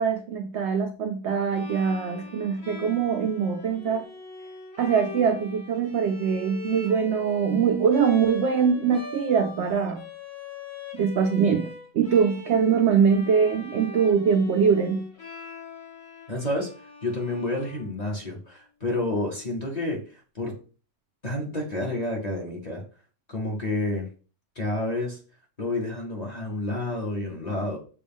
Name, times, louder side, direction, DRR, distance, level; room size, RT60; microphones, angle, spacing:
voice 1, 0.0-4.1 4.8-10.1 10.9-15.1, right 6 dB, 75° right, 0.6 m, -23 dB
Bowed string instrument, 1.5-18.4, left 3 dB, 65° left, 2.1 m, -41 dB
voice 2, 16.3-16.7 17.0-20.0 20.3-20.6 21.2-22.8 23.3-24.1 24.6-25.2 25.6-27.8, left 2 dB, 35° left, 0.8 m, -29 dB
6.6 x 2.3 x 3.5 m
omnidirectional pair, 1.7 m